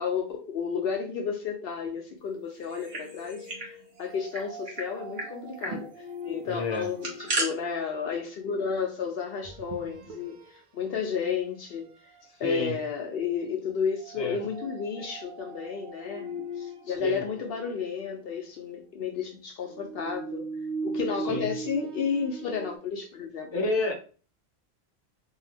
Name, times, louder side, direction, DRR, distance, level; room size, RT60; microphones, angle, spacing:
voice 1, 0.0-11.9 12.4-20.4 20.8-23.7, left 6 dB, 65° left, 3 dB, 0.7 m, -32 dB
sound 1, 2.6-3.7 4.0-4.1 4.3-4.9 5.2-5.3 5.6-5.8 6.7-7.5, right 1 dB, 55° right, 1.0 m, -33 dB
sound 2, 3.0-8.3 9.4-10.6 11.1-11.3 11.8-12.3 14.0-18.4 19.7-22.8, right 2 dB, 80° right, 0.8 m, -40 dB
voice 2, 6.4-6.9 12.4-12.8 14.2-14.4 16.9-17.3 21.3-21.5 23.5-23.9, left 2 dB, 30° left, 0 dB, 0.6 m, -29 dB
2.6 x 2.2 x 3.3 m, 0.37 s
omnidirectional pair, 1.1 m